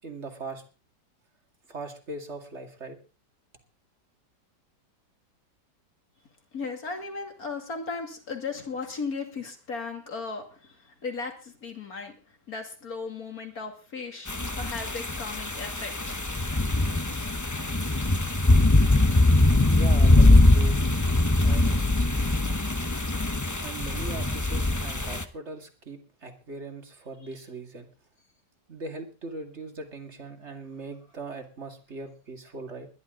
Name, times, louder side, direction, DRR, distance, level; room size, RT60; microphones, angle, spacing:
voice 1, 0.0-0.6 1.7-3.0 19.7-20.8 21.4-21.9 23.6-27.9 28.7-32.9, right 3 dB, 40° right, 5 dB, 2.5 m, -40 dB
voice 2, 6.5-10.7 11.0-12.2 12.5-16.2, left 4 dB, 60° left, 4 dB, 3.1 m, -36 dB
sound 1, 14.3-25.2, left 2 dB, 15° left, 0.8 m, -22 dB
21.0 x 11.5 x 3.8 m, 0.34 s
omnidirectional pair, 1.8 m